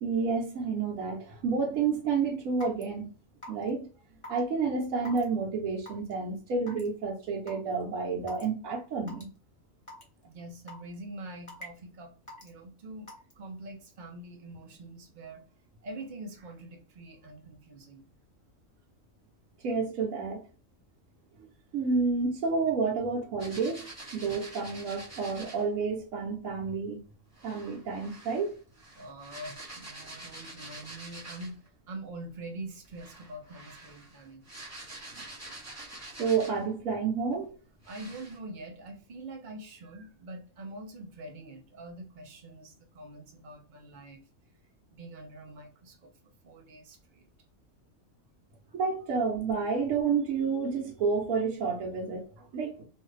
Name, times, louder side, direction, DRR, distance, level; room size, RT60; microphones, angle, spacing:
voice 1, 0.0-3.1 3.5-3.9 4.3-9.3 19.6-20.5 21.7-23.9 24.1-27.0 27.4-28.5 36.2-37.5 48.7-52.8, right 5 dB, 85° right, 1.1 m, -30 dB
Raindrop / Water tap faucet / Drip, 2.6-2.8 3.4-3.7 4.2-4.4 5.0-5.2 5.9-6.1 6.7-6.9 7.5-7.6 8.3-8.4 9.1-9.2 9.9-10.0 10.7-10.9 11.5-11.8 12.3-12.5 13.1-13.3, left 1 dB, 25° left, 1.0 m, -44 dB
voice 2, 10.2-12.1 12.4-15.4 15.8-18.1 29.0-34.5 37.9-44.2 44.9-46.1 46.4-47.3, right 2 dB, 45° right, 0.7 m, -44 dB
sound 1, 23.4-25.7 27.3-31.7 32.8-36.7 37.3-37.4 37.8-38.4, right 2 dB, 15° right, 0.8 m, -46 dB
2.7 x 2.4 x 3.1 m
omnidirectional pair, 1.4 m